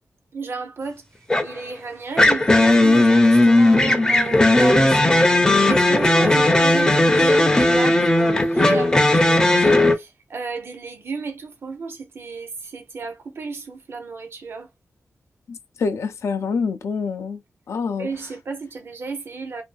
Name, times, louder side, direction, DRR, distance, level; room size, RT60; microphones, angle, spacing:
voice 1, 0.3-1.0 1.4-4.9 5.6-14.7 18.0-19.6, right 4 dB, 55° right, 0.6 m, -32 dB
sound 1, 1.3-1.6 2.2-9.9, left 1 dB, 15° left, 0.4 m, -16 dB
voice 2, 15.5-17.4 17.7-18.1, left 5 dB, 75° left, 0.4 m, -26 dB
2.5 x 2.3 x 2.3 m
wide cardioid pair, 130°, 5 cm